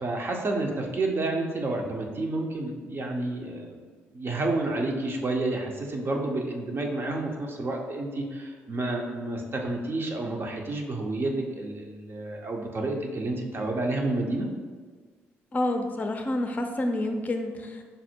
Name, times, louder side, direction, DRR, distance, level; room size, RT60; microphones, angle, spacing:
voice 1, 0.0-3.8 4.1-14.5, right 2 dB, 45° right, 1 dB, 0.7 m, -30 dB
voice 2, 15.5-17.8, left 1 dB, 30° left, 4 dB, 0.5 m, -28 dB
5.3 x 2.1 x 4.4 m, 1.5 s
supercardioid pair, 60°, 5 cm